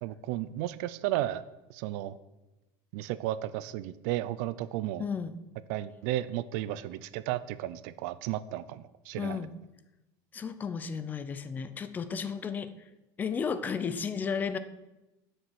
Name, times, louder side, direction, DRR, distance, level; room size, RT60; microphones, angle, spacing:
voice 1, 0.0-1.4 1.7-2.2 2.9-5.0 5.7-9.4, right 14 dB, 80° right, 16 dB, 0.7 m, -33 dB
voice 2, 5.0-5.3 9.2-9.6 10.3-12.7 13.2-14.6, left 6 dB, 20° left, 13 dB, 0.6 m, -33 dB
11.5 x 6.7 x 8.1 m, 1.0 s
cardioid pair, 180°, 9 cm